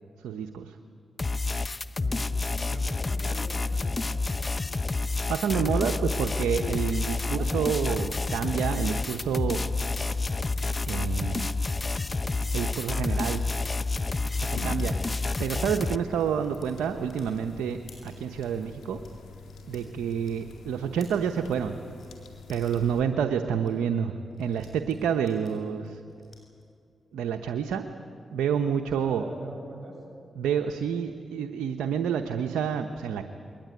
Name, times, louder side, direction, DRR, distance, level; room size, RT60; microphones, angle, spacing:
voice 1, 0.2-0.8 5.3-9.6 10.9-11.5 12.5-13.4 14.4-14.9 15.4-19.0 19.7-21.8 22.5-26.0 27.1-27.8 28.3-29.2 30.4-33.2, right 7 dB, 90° right, 6 dB, 0.9 m, -28 dB
sound 1, 1.2-16.0, left 3 dB, 35° left, 0.7 m, -29 dB
voice 2, 2.0-4.2 7.3-7.8 19.8-20.0 29.0-30.0, right 1 dB, 40° right, 0 dB, 7.4 m, -43 dB
sound 2, 6.6-23.0, left 3 dB, 90° left, 2.5 m, -45 dB
sound 3, 6.8-11.8 12.3-12.7 13.3-13.5 13.9-14.0 14.3-21.6 22.0-22.1 22.5-22.9 23.3-23.4 23.6-23.7 24.0-26.6, left 3 dB, 55° left, 7.4 m, -55 dB
22.0 x 19.5 x 9.6 m, 2.4 s
supercardioid pair, 50°, 0 cm